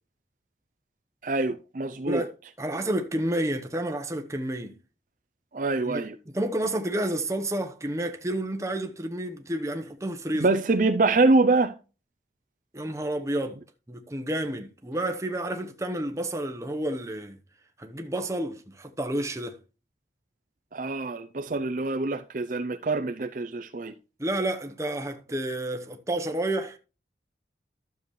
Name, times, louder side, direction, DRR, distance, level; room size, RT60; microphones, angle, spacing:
voice 1, 1.2-2.2 5.5-6.2 10.4-11.7 20.7-23.9, right 3 dB, 50° right, 0.5 m, -25 dB
voice 2, 2.6-4.7 5.8-10.5 12.7-13.6 13.9-17.4 17.8-19.6 24.2-26.8, right 1 dB, 15° right, 1.0 m, -30 dB
12.5 x 7.0 x 3.1 m
head